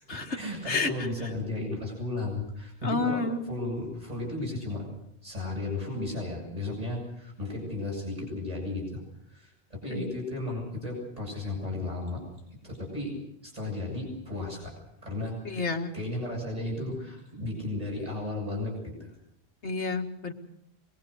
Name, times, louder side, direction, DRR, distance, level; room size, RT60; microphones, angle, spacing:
voice 1, 0.0-4.9 5.2-9.0 9.3-12.2 12.6-13.1 13.4-15.6 15.9-19.1, left 2 dB, 35° right, -1 dB, 8.2 m, -34 dB
voice 2, 0.7-1.1 2.8-3.5 9.9-10.0 15.4-15.9 19.6-20.3, left 3 dB, 90° left, 3 dB, 2.4 m, -30 dB
25.0 x 21.0 x 6.6 m, 0.76 s
omnidirectional pair, 1.1 m